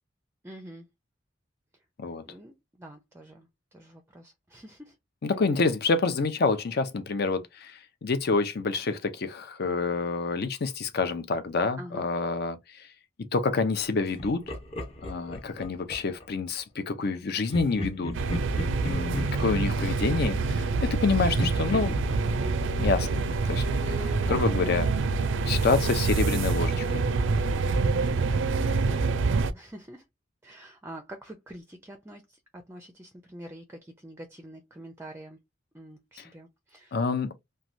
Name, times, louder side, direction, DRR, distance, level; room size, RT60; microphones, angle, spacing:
voice 1, 0.4-0.9 2.3-5.0 5.4-5.6 11.8-12.1 23.6-24.5 27.4-27.8 28.6-30.0 30.4-35.4 35.7-37.0, right 1 dB, 15° right, 0.4 m, -46 dB
voice 2, 5.2-12.9 13.3-14.5 15.0-18.2 18.8-22.0 22.8-24.0 24.3-24.9 25.5-27.0 36.9-37.3, left 4 dB, 55° left, 0.6 m, -28 dB
Laughter, 14.2-16.3 17.5-21.0 21.4-24.1, left 1 dB, 30° left, 0.8 m, -38 dB
sound 1, 18.1-29.5, right 4 dB, 70° right, 0.4 m, -26 dB
3.1 x 2.2 x 2.6 m
head